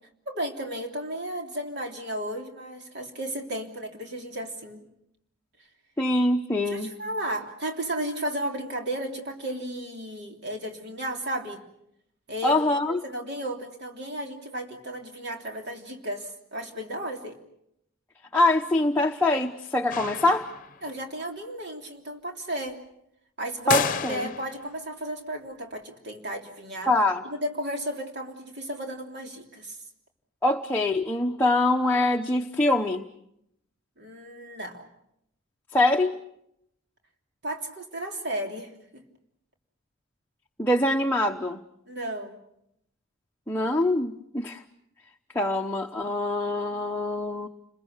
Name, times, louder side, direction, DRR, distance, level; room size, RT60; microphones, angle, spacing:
voice 1, 0.3-4.8 6.7-11.6 12.3-12.6 12.9-17.4 20.8-22.8 23.4-23.8 24.1-26.9 27.2-29.8 34.0-34.9 37.4-39.0 41.9-42.4, right 1 dB, 55° right, 2 dB, 3.3 m, -34 dB
voice 2, 6.0-6.9 12.4-13.0 18.3-20.5 23.7-24.3 26.9-27.2 30.4-33.0 35.7-36.1 40.6-41.6 43.5-44.6 45.3-47.5, left 2 dB, 10° left, 1 dB, 0.9 m, -24 dB
sound 1, 19.9-20.9 23.7-24.7, left 6 dB, 45° left, 0.9 m, -30 dB
30.0 x 22.0 x 6.7 m, 0.80 s
head